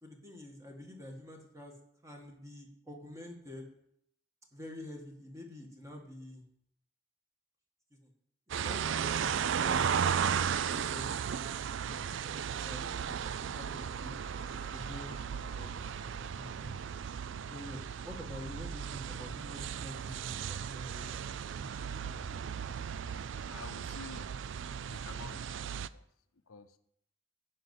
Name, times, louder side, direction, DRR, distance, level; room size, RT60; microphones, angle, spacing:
voice 1, 0.0-1.7 2.0-3.7 4.5-6.4 8.0-8.1 8.5-10.2 10.7-11.4 11.8-14.2 14.7-15.7 16.3-17.0 17.5-22.4, left 1 dB, 15° right, 1 dB, 1.8 m, -48 dB
sound 1, 8.5-25.9, right 7 dB, 60° right, 0.3 m, -35 dB
sound 2, 13.7-18.9, right 2 dB, 30° right, 5.4 m, -58 dB
voice 2, 23.5-24.3 24.8-25.7 25.9-26.0 26.5-26.8, left 4 dB, 80° left, 10 dB, 0.8 m, -49 dB
10.0 x 5.5 x 8.2 m, 0.73 s
head